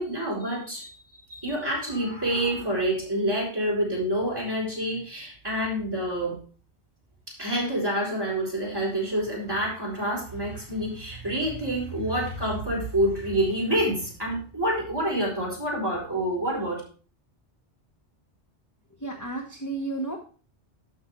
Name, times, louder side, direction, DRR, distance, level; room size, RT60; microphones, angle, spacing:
voice 1, 0.0-6.4 7.3-16.8, right 1 dB, 20° right, -3 dB, 4.1 m, -27 dB
voice 2, 19.0-20.2, right 3 dB, 15° left, 2 dB, 1.0 m, -32 dB
12.0 x 6.0 x 3.2 m, 0.38 s
omnidirectional pair, 1.1 m